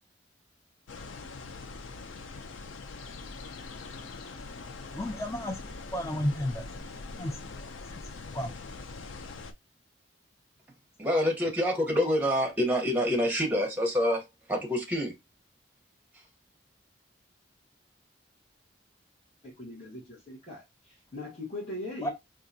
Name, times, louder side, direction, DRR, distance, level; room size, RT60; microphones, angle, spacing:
sound 1, 0.9-9.5, left 3 dB, 90° left, 0.5 m, -43 dB
voice 1, 4.9-6.7 7.2-7.6 7.9-8.0 8.3-8.6 22.0-22.1, equal, 15° left, 0.4 m, -33 dB
voice 2, 11.0-14.2 14.5-15.1, equal, 10° right, 0.9 m, -26 dB
voice 3, 19.4-22.1, left 2 dB, 35° left, 1.4 m, -40 dB
3.7 x 2.4 x 2.7 m
head